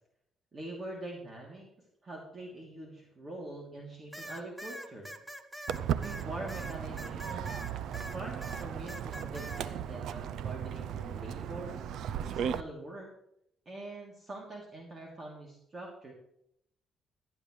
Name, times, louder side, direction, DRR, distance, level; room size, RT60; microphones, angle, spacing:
voice 1, 0.5-1.7 2.0-5.1 6.0-7.6 8.1-11.8 12.2-13.1 13.6-16.1, right 2 dB, 35° right, -1 dB, 3.0 m, -44 dB
sound 1, 4.1-8.2 8.4-9.6, equal, 5° right, 1.3 m, -44 dB
Walk footsteps, 5.7-12.6, right 9 dB, 80° right, 0.5 m, -36 dB
17.5 x 10.5 x 3.3 m, 0.75 s
cardioid pair, 90°, 0 cm